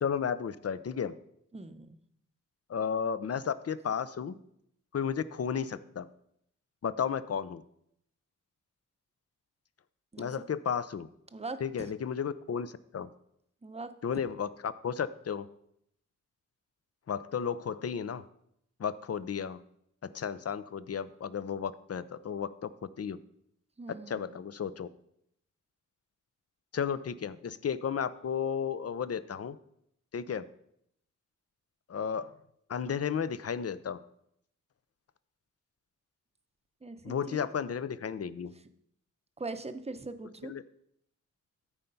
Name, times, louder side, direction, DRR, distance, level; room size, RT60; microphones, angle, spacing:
voice 1, 0.0-1.1 2.7-4.4 4.9-6.1 6.8-7.6 10.2-11.1 11.6-13.1 14.0-15.5 17.1-18.2 18.8-19.6 20.0-22.7 23.0-23.2 24.1-24.9 26.7-29.6 30.1-30.5 31.9-32.3 32.7-34.0 37.0-38.5 40.4-40.6, left 7 dB, 50° left, 14 dB, 0.6 m, -33 dB
voice 2, 1.5-2.0 10.1-10.3 11.3-11.9 13.6-13.9 23.8-24.4 36.8-37.5 39.4-40.5, right 3 dB, 20° right, 10 dB, 0.7 m, -41 dB
13.5 x 4.5 x 5.4 m, 0.74 s
wide cardioid pair, 80°, 31 cm